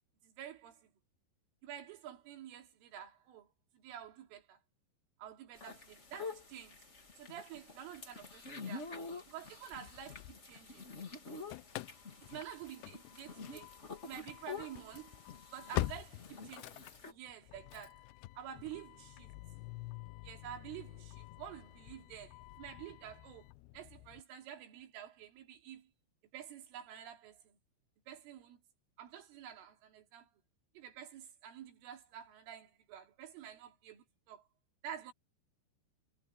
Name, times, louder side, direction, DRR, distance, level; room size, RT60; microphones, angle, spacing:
voice 1, 0.2-0.9 1.6-4.6 5.2-6.9 7.2-9.0 9.3-10.9 12.2-13.7 14.0-15.2 15.5-18.1 18.4-19.3 20.2-25.9 26.3-27.6 28.1-28.6 29.0-30.3 30.8-34.4 34.8-35.1, right 10 dB, 85° right, 5.5 m, -49 dB
sound 1, 5.5-17.1, left 4 dB, 60° left, 0.7 m, -48 dB
Engine starting / Slam, 9.5-10.9 11.2-24.2, left 18 dB, 85° left, 2.5 m, -46 dB
omnidirectional pair, 5.6 m